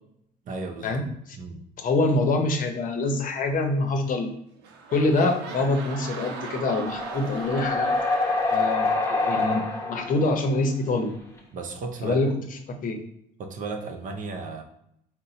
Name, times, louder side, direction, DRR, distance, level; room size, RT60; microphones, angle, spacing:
voice 1, 0.4-1.0 1.4-1.6 11.5-12.2 13.4-14.6, right 4 dB, 50° right, 5 dB, 0.7 m, -34 dB
voice 2, 1.8-4.3 4.9-7.9 8.5-11.1 12.0-12.3 12.8-13.0, left 2 dB, 55° left, 5 dB, 0.7 m, -25 dB
sound 1, 4.1-4.3 4.6-10.4 11.1-11.2, right 5 dB, 90° right, 0.6 m, -40 dB
sound 2, 6.8-10.3 11.4-11.5, left 3 dB, 15° left, 0.8 m, -26 dB
4.0 x 2.1 x 3.9 m, 0.75 s
cardioid pair, 110°, 17 cm